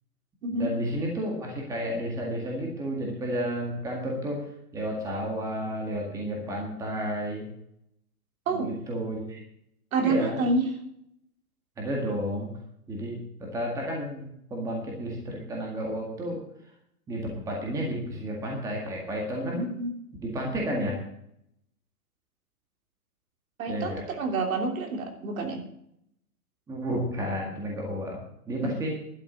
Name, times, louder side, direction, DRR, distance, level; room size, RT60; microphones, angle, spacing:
voice 1, 0.5-4.5 4.7-7.4 8.5-9.4 10.0-10.4 11.8-12.5 12.9-14.2 14.5-16.4 17.1-19.6 20.2-21.0 23.7-24.1 26.7-28.2 28.5-29.0, equal, 5° right, -1 dB, 1.8 m, -31 dB
voice 2, 9.9-10.7 19.5-19.9 23.6-25.6 28.6-28.7, right 3 dB, 60° right, 4 dB, 3.2 m, -28 dB
12.0 x 7.0 x 8.5 m, 0.72 s
hypercardioid pair, 170°, 46 cm